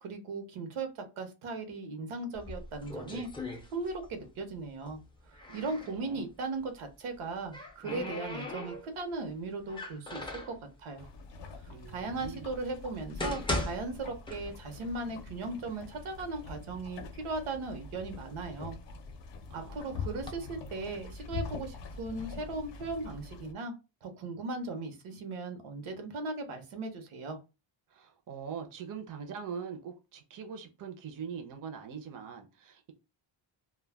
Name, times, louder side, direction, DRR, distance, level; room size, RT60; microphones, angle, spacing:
voice 1, 0.0-5.0 5.3-11.1 11.9-18.8 19.5-23.7 24.0-27.4, right 3 dB, 85° right, 0.8 m, -38 dB
sound 1, 2.3-4.2 4.5-6.0 7.1-9.1 9.7-10.6 11.4-11.5 12.1-12.2 12.9-14.9 15.2-15.3 16.0-16.1 16.5-17.1 17.6-19.3 20.0-20.3, left 2 dB, 10° left, 0.4 m, -39 dB
voice 2, 5.5-6.3 11.7-12.5 19.5-20.7 27.9-32.9, right 6 dB, 45° right, 0.5 m, -43 dB
sound 2, 11.0-23.5, left 5 dB, 60° left, 0.5 m, -44 dB
2.2 x 2.1 x 3.3 m
wide cardioid pair, 140°, 49 cm